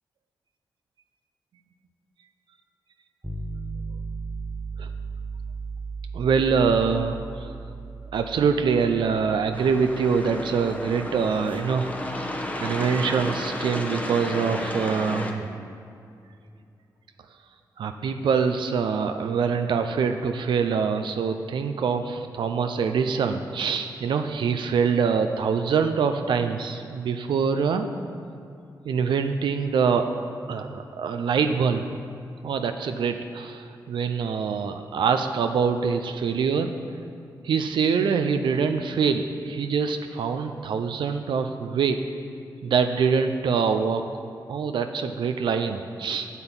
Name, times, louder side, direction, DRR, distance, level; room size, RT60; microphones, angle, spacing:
sound 1, 3.2-13.1, right 4 dB, 10° right, 1.0 m, -37 dB
voice 1, 6.2-7.5 8.1-12.3 12.6-15.5 17.8-27.9 28.9-30.1 30.5-31.9 32.4-36.7 37.4-42.0 42.6-44.0 44.5-46.3, right 6 dB, 75° right, 7 dB, 0.5 m, -24 dB
sound 2, 9.5-15.3, left 1 dB, 20° left, 1.0 m, -32 dB
8.1 x 6.9 x 5.8 m, 2.5 s
cardioid pair, 60°, 8 cm